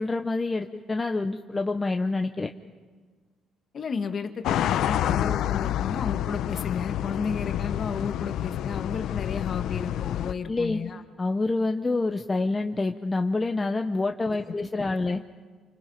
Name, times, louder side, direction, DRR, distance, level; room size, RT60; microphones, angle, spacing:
voice 1, 0.0-2.5 10.5-10.8 11.2-15.2, left 3 dB, 15° left, 5 dB, 0.7 m, -27 dB
voice 2, 3.7-11.0 14.5-14.7 15.1-15.2, left 5 dB, 35° left, 7 dB, 1.7 m, -33 dB
sound 1, 4.4-10.3, left 11 dB, 65° left, 0.6 m, -28 dB
29.0 x 25.5 x 5.7 m, 1.5 s
cardioid pair, 145°, 0 cm